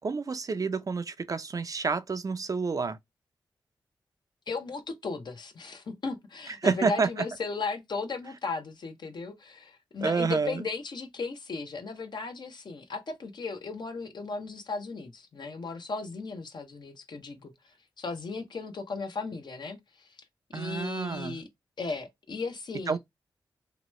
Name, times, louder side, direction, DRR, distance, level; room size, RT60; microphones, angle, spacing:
voice 1, 0.0-3.0 6.6-7.1 10.0-10.6 20.5-21.4 22.9-23.0, right 4 dB, 45° right, 0.4 m, -29 dB
voice 2, 4.5-20.2 20.5-21.5 21.8-23.0, left 4 dB, 65° left, 0.7 m, -36 dB
2.9 x 2.2 x 3.0 m
cardioid pair, 55°, 8 cm